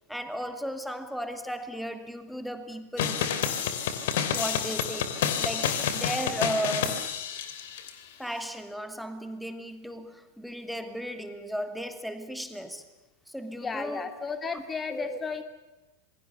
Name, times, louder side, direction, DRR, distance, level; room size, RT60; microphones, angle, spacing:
voice 1, 0.1-3.3 4.3-7.2 8.2-12.8 13.3-14.0 14.5-14.6 14.9-15.2, equal, ahead, 8 dB, 2.4 m, -35 dB
sound 1, 3.0-7.9, left 8 dB, 55° left, 2.9 m, -29 dB
voice 2, 13.6-15.4, left 5 dB, 15° left, 8 dB, 2.6 m, -34 dB
27.0 x 22.0 x 7.0 m, 1.0 s
figure-of-eight pair, 90°, 0 cm